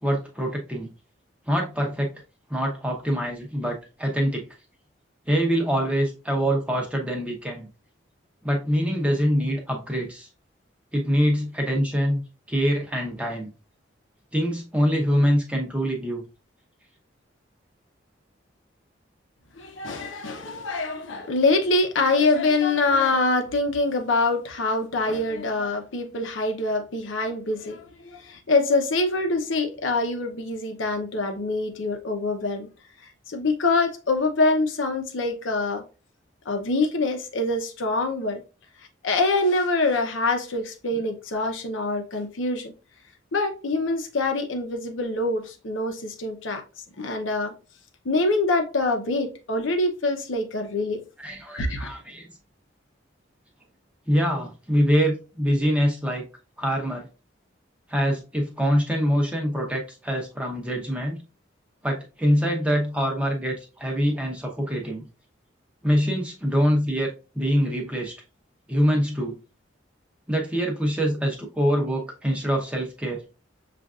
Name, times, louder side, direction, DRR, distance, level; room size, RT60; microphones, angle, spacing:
voice 1, 0.0-0.9 1.5-2.1 2.5-4.4 5.3-7.7 8.4-10.3 10.9-12.2 12.5-13.5 14.3-16.2 40.9-41.0 51.2-52.3 54.1-56.3 56.6-57.1 57.9-61.2 61.8-65.0 65.8-68.1 68.7-69.3 70.3-73.2, equal, 5° right, 0.8 m, -24 dB
voice 2, 19.6-32.7 33.3-35.8 36.5-38.4 39.0-42.7 43.3-46.6 47.0-47.5 48.0-51.0 51.5-51.9, left 2 dB, 85° left, 0.7 m, -25 dB
6.4 x 2.5 x 2.4 m
head